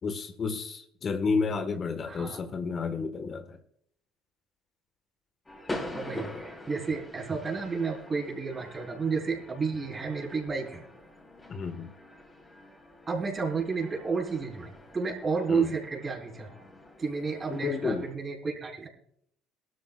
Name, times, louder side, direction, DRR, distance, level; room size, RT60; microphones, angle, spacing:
voice 1, 0.0-3.6 11.5-11.9 15.5-15.7 17.5-18.1, left 4 dB, 40° left, 1.5 m, -31 dB
voice 2, 2.1-2.4 5.9-10.8 13.1-16.5 17.0-18.9, right 5 dB, 30° right, 4.5 m, -31 dB
sound 1, 5.5-18.2, left 1 dB, 20° left, 4.5 m, -44 dB
22.5 x 13.0 x 2.4 m
hypercardioid pair, 65°, 0 cm